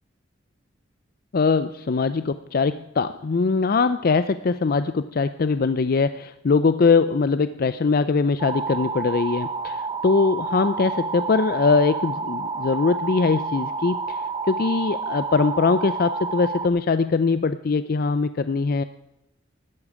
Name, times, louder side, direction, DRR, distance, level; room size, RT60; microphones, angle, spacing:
voice 1, 1.3-14.2 14.5-18.8, left 4 dB, 50° left, 13 dB, 0.5 m, -22 dB
sound 1, 8.4-16.7, right 4 dB, 25° right, 0.7 m, -29 dB
12.5 x 8.5 x 9.5 m, 0.88 s
head